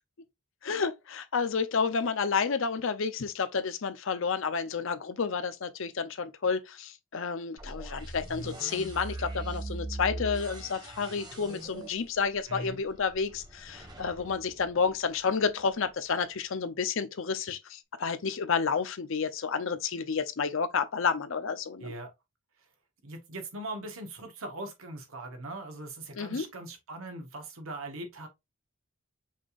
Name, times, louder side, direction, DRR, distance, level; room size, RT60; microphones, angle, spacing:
voice 1, 0.6-21.9 26.1-26.5, left 5 dB, 65° left, 0.6 m, -30 dB
sound 1, 7.6-15.5, right 2 dB, 20° right, 1.0 m, -41 dB
voice 2, 12.5-12.8 21.8-22.1 23.0-28.3, right 2 dB, 70° right, 1.3 m, -40 dB
5.4 x 3.5 x 2.4 m
head